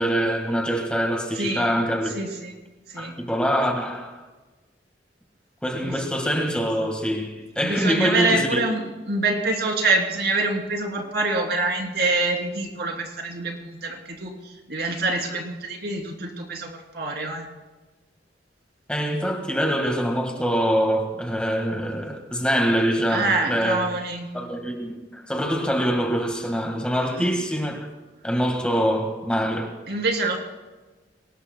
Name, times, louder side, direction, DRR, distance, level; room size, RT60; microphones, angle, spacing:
voice 1, 0.0-2.1 3.0-4.2 5.6-8.6 18.9-23.9 24.3-27.9 28.2-29.7, equal, 5° left, 1.6 m, -24 dB
voice 2, 1.3-1.7 2.1-2.5 2.9-3.1 5.8-6.0 7.6-8.8 9.1-17.5 23.1-24.3 27.1-27.3 29.9-30.4, right 2 dB, 65° right, 2.9 m, -26 dB
23.5 x 19.5 x 2.2 m
head